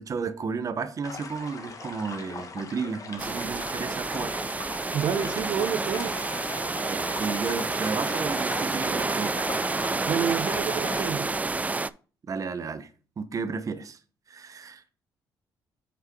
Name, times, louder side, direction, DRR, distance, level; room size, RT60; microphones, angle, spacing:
voice 1, 0.0-4.4 6.9-9.4 12.3-12.9 13.2-14.0 14.3-14.8, right 5 dB, 45° right, 1.0 m, -33 dB
sound 1, 1.0-11.1, left 4 dB, 45° left, 1.3 m, -40 dB
sound 2, 3.2-11.9, right 3 dB, 20° right, 0.3 m, -29 dB
voice 2, 4.9-6.1 10.1-11.3, right 8 dB, 70° right, 0.9 m, -28 dB
6.8 x 4.6 x 4.6 m
supercardioid pair, 65°, 8 cm